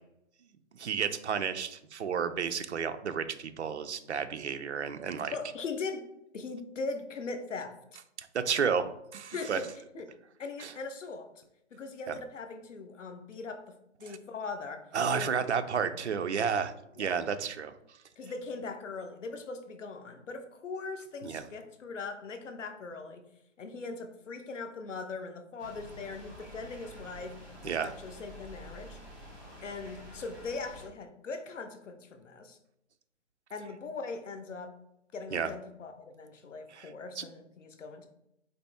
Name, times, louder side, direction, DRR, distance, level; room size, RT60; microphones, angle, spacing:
voice 1, 0.7-5.3 8.2-9.6 10.6-10.7 12.1-12.2 14.1-14.2 14.9-17.7 21.2-21.5 27.6-27.9 35.3-35.5 36.7-37.2, right 6 dB, 65° right, 9 dB, 0.5 m, -32 dB
voice 2, 5.3-6.0 6.3-7.8 9.3-9.7 9.9-10.1 10.4-11.3 11.7-15.3 15.7-15.9 17.0-17.1 18.2-23.2 23.6-27.4 27.6-29.0 29.6-32.6 33.5-34.7 35.1-38.1, left 4 dB, 75° left, 7 dB, 0.7 m, -40 dB
sound 1, 25.6-30.9, equal, 15° right, 1.5 m, -49 dB
4.1 x 3.0 x 3.4 m, 0.80 s
hypercardioid pair, 180°, 37 cm